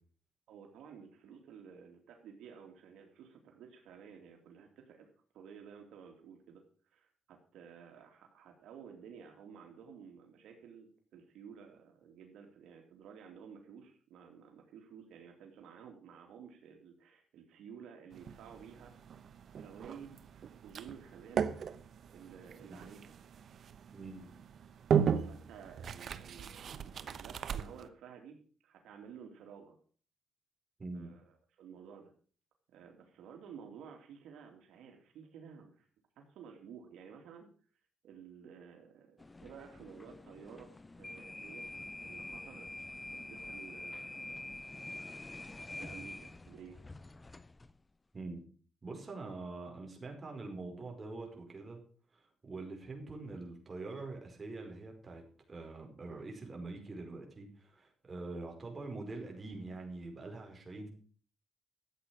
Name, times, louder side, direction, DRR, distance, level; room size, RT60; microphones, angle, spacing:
voice 1, 0.5-5.1 5.3-6.6 6.9-19.2 19.6-21.5 22.1-23.1 25.3-29.8 30.9-32.1 32.7-35.9 36.2-37.5 38.0-40.7 41.0-41.7 42.0-42.7 43.1-44.5 45.8-46.8, right 7 dB, 85° right, 3 dB, 2.9 m, -53 dB
sound 1, 18.1-27.9, right 7 dB, 55° right, 1.0 m, -37 dB
voice 2, 23.9-24.3 30.8-31.1 48.1-48.4 48.8-51.8 52.1-60.9, right 3 dB, 25° right, 2 dB, 5.0 m, -44 dB
sound 2, 39.2-47.8, left 2 dB, 20° left, 0.6 m, -46 dB
14.0 x 8.5 x 6.5 m, 0.43 s
cardioid pair, 115°, 0 cm